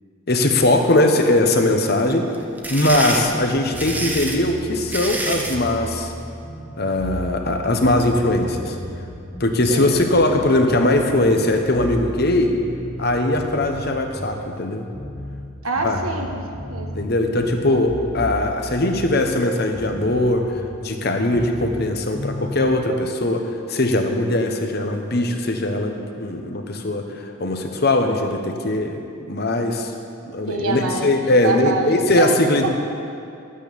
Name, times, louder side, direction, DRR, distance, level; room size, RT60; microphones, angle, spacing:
voice 1, 0.3-2.3 2.7-6.1 6.8-8.8 9.4-12.5 13.0-14.9 15.8-16.0 16.9-20.4 20.8-29.0 29.3-29.9 30.3-32.7, left 1 dB, 45° left, 4 dB, 1.1 m, -20 dB
sound 1, 2.3-5.6, right 1 dB, 10° right, 0.8 m, -27 dB
sound 2, 2.9-22.8, left 1 dB, 20° left, 1.1 m, -35 dB
voice 2, 9.7-10.0 15.6-16.9 17.7-17.9 30.5-32.7, right 3 dB, 85° right, 2 dB, 1.5 m, -26 dB
12.0 x 8.9 x 7.0 m, 2.5 s
head